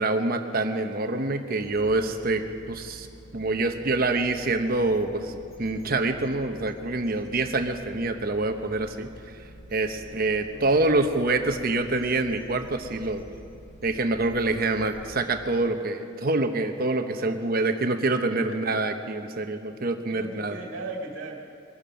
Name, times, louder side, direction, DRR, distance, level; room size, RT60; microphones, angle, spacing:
voice 1, 0.0-3.1 3.3-9.1 9.7-13.2 13.8-20.6, right 2 dB, 50° right, 6 dB, 1.0 m, -26 dB
sound 1, 1.6-15.1, right 1 dB, 90° left, 4.7 m, -48 dB
voice 2, 10.0-11.0 18.3-18.6 20.1-21.4, right 2 dB, 85° right, 0 dB, 2.0 m, -39 dB
22.0 x 12.5 x 5.2 m, 2.5 s
head